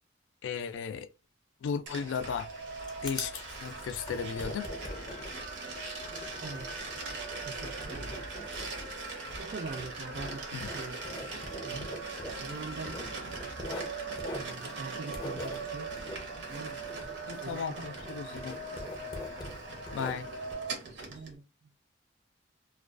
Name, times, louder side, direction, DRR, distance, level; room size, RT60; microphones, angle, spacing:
voice 1, 0.4-1.1 1.6-2.5 3.0-4.7 10.6-10.7 17.2-18.6 19.9-20.3, left 6 dB, 85° left, 0.3 m, -35 dB
sound 1, 1.9-21.3, right 3 dB, 75° right, 0.7 m, -40 dB
Writing, 2.4-17.7 18.0-20.5, left 1 dB, 25° left, 0.5 m, -44 dB
voice 2, 6.4-6.8 7.4-8.3 9.4-11.0 11.6-11.9 12.4-13.0 14.3-15.9 16.5-16.8 17.4-17.9 21.1-21.7, right 4 dB, 45° right, 0.4 m, -43 dB
2.3 x 2.2 x 2.3 m
head